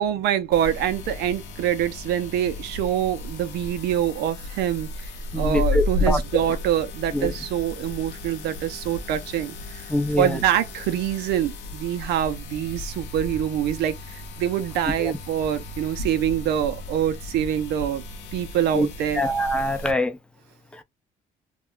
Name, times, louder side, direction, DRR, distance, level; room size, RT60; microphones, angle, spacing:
voice 1, 0.0-9.9 10.2-18.0 18.3-19.2, right 10 dB, 80° right, 0.5 m, -25 dB
sound 1, 0.5-19.9, left 2 dB, 90° left, 0.7 m, -34 dB
voice 2, 5.3-6.5 7.1-7.3 9.9-10.4 15.0-15.1 18.7-18.9 19.1-20.2 20.7-20.8, left 1 dB, 5° left, 0.5 m, -24 dB
2.2 x 2.2 x 3.7 m
cardioid pair, 110°, 17 cm